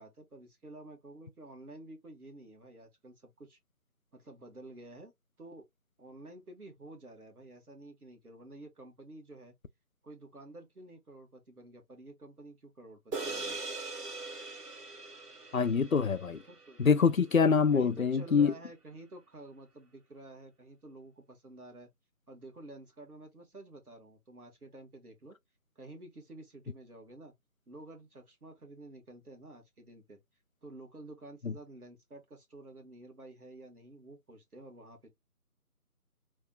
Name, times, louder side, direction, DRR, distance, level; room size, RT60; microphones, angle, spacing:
voice 1, 0.0-3.6 4.1-5.1 5.4-5.7 6.0-9.5 10.0-13.6 16.5-16.8 17.7-21.9 22.3-25.4 25.8-27.3 27.7-30.2 30.6-35.1, right 2 dB, 70° right, 1.9 m, -51 dB
sound 1, 13.1-17.7, right 3 dB, 85° right, 1.9 m, -42 dB
voice 2, 15.5-16.4 16.8-18.5 31.4-31.5, left 5 dB, 60° left, 0.5 m, -25 dB
3.5 x 3.1 x 2.5 m
figure-of-eight pair, 175°, 46 cm